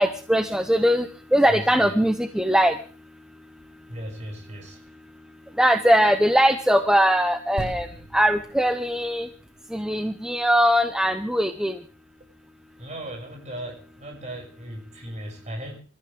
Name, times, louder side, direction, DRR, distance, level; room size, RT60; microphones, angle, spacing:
voice 1, 0.0-2.8 5.6-7.9 8.1-9.3 9.7-11.8, equal, 5° right, 8 dB, 0.7 m, -21 dB
voice 2, 1.5-2.0 3.9-4.8 12.8-15.8, right 1 dB, 30° right, 1 dB, 6.3 m, -37 dB
sound 1, 7.6-11.2 11.8-11.9, right 1 dB, 80° right, 6.3 m, -40 dB
27.0 x 14.0 x 3.4 m, 0.39 s
head